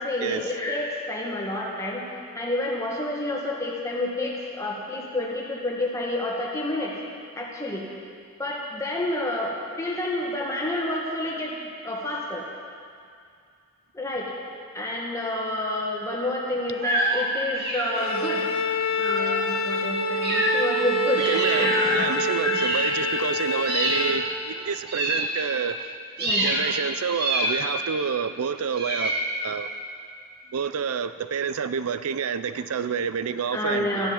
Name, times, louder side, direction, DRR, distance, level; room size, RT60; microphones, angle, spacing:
voice 1, 0.0-2.0 2.4-6.9 7.4-7.9 8.4-9.5 9.8-11.5 11.8-12.4 13.9-14.3 14.7-18.5 18.9-22.1 22.4-22.8 26.2-26.5 33.5-34.1, left 1 dB, 15° left, -3 dB, 1.9 m, -29 dB
sound 1, 16.8-17.2 17.6-18.2 19.0-19.4 20.2-20.8 21.1-22.0 22.5-23.3 23.6-24.3 24.9-25.8 26.2-26.7 27.1-27.9 28.7-29.6, right 1 dB, 45° right, 2.1 m, -27 dB
Bowed string instrument, 17.9-24.3, left 1 dB, 65° left, 1.2 m, -26 dB
voice 2, 21.3-25.9 26.4-29.2 29.4-29.7 30.5-34.1, right 6 dB, 80° right, 12 dB, 0.5 m, -28 dB
13.5 x 10.5 x 7.1 m, 2.3 s
head